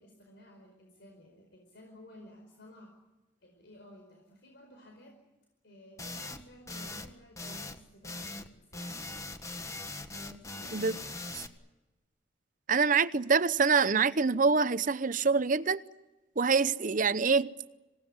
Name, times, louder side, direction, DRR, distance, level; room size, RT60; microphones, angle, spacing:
voice 1, 0.0-2.9 3.4-5.2 5.6-8.9 10.1-10.8, left 1 dB, 65° left, 2 dB, 4.9 m, -54 dB
sound 1, 6.0-6.4 6.7-7.1 7.4-7.8 8.0-8.5 8.7-11.5, left 2 dB, 15° left, 1.5 m, -41 dB
voice 2, 12.7-15.8 16.4-17.5, right 5 dB, 45° right, 15 dB, 0.8 m, -25 dB
26.5 x 18.0 x 9.8 m, 1.1 s
head